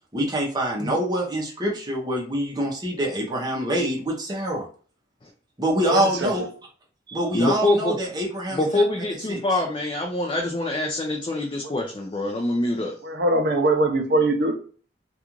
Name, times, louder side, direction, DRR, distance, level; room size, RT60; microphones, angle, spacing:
voice 1, 0.1-4.7 5.6-6.5 7.1-8.8 9.3-9.4, right 1 dB, 20° right, 0.7 m, -25 dB
voice 2, 5.9-6.3 11.6-11.7 13.0-14.5, right 1 dB, 60° right, 0.5 m, -22 dB
voice 3, 7.3-8.0 8.5-12.9, left 2 dB, 25° left, 0.3 m, -25 dB
2.4 x 2.4 x 2.9 m
head